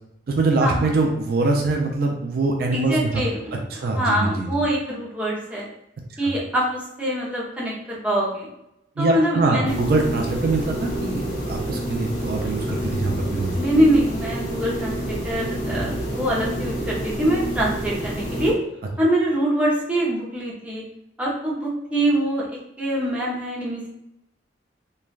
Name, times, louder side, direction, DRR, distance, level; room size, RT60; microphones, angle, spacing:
voice 1, 0.3-3.2 3.7-4.5 6.2-6.3 9.0-13.5, right 3 dB, 55° right, 1 dB, 0.4 m, -23 dB
voice 2, 2.7-3.6 3.9-5.7 6.2-8.5 9.0-9.8 13.5-18.6 19.0-20.8 21.2-22.5 22.8-23.9, right 1 dB, 5° right, -5 dB, 0.6 m, -24 dB
sound 1, 9.6-18.5, right 1 dB, 80° left, 1.4 m, -28 dB
3.1 x 2.2 x 2.3 m, 0.84 s
head